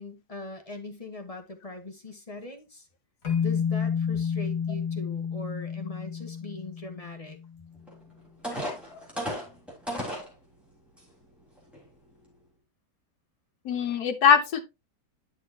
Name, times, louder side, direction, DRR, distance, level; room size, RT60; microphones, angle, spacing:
voice 1, 0.0-2.9 3.4-7.4, left 2 dB, 25° left, 1.2 m, -41 dB
sound 1, 3.2-7.5, left 7 dB, 40° left, 2.6 m, -30 dB
sound 2, 7.9-8.0 8.4-10.3 11.0-11.1 11.6-11.8, equal, ahead, 3.2 m, -33 dB
voice 2, 13.6-14.6, left 7 dB, 75° left, 1.5 m, -22 dB
10.0 x 6.2 x 2.8 m
omnidirectional pair, 1.7 m